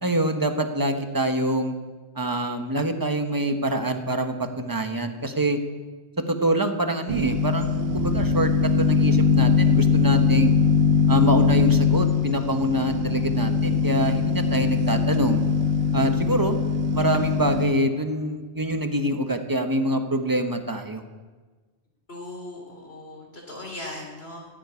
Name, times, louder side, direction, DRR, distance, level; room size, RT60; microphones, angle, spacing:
voice 1, 0.0-1.7 2.1-5.6 6.2-10.6 11.1-15.4 15.9-16.6 16.9-21.0, right 1 dB, 20° right, 6 dB, 1.2 m, -25 dB
sound 1, 7.1-17.6, left 4 dB, 60° right, 1.4 m, -21 dB
voice 2, 22.1-24.5, left 1 dB, 65° left, -1 dB, 4.0 m, -38 dB
15.5 x 7.6 x 9.6 m, 1.4 s
omnidirectional pair, 1.1 m